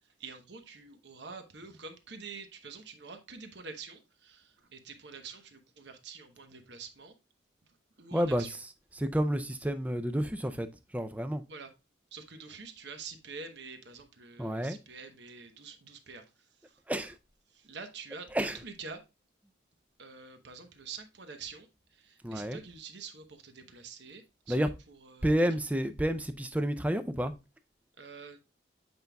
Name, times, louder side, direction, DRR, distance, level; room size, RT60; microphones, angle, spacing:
voice 1, 0.2-7.1 8.0-8.6 11.5-11.7 12.1-16.8 17.5-19.0 20.0-25.3 28.0-28.4, right 5 dB, 65° right, 1.0 m, -47 dB
voice 2, 8.1-8.6 9.0-10.7 10.9-11.4 14.4-14.8 16.9-17.1 18.3-18.6 22.2-22.6 24.5-24.7 25.2-27.3, equal, 10° right, 0.4 m, -30 dB
8.0 x 5.2 x 2.2 m
head